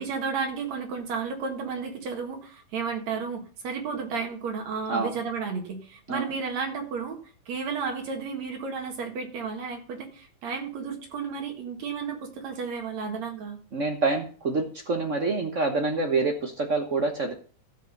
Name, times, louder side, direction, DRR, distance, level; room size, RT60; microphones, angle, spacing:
voice 1, 0.0-7.2 7.5-13.6, right 5 dB, 65° right, 3 dB, 2.9 m, -32 dB
voice 2, 13.7-17.3, right 3 dB, 90° right, 4 dB, 0.6 m, -26 dB
14.5 x 5.4 x 5.3 m, 0.41 s
omnidirectional pair, 3.4 m